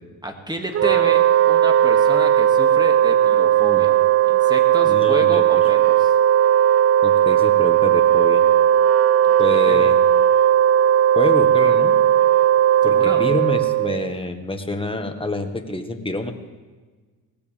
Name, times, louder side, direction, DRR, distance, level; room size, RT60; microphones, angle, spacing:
voice 1, 0.2-4.0 4.3-6.1 9.2-9.9 12.8-13.3, right 1 dB, 10° right, 4 dB, 2.3 m, -30 dB
Wind instrument woodwind instrument, 0.7-14.1, right 10 dB, 30° right, 0.5 m, -16 dB
voice 2, 4.8-5.6 7.0-8.4 9.4-10.0 11.1-12.0 12.8-16.3, left 2 dB, 10° left, 5 dB, 1.7 m, -27 dB
19.5 x 15.0 x 3.5 m, 1.4 s
supercardioid pair, 70°, 47 cm